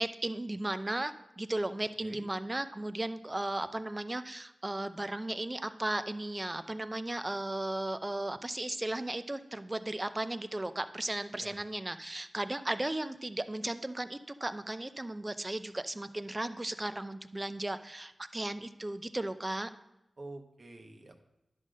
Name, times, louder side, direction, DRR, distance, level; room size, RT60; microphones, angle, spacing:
voice 1, 0.0-19.7, right 1 dB, 25° right, 11 dB, 0.5 m, -35 dB
voice 2, 20.2-21.2, right 2 dB, 50° right, 4 dB, 1.1 m, -47 dB
11.0 x 3.8 x 6.3 m, 0.91 s
wide cardioid pair, 65°, 0 cm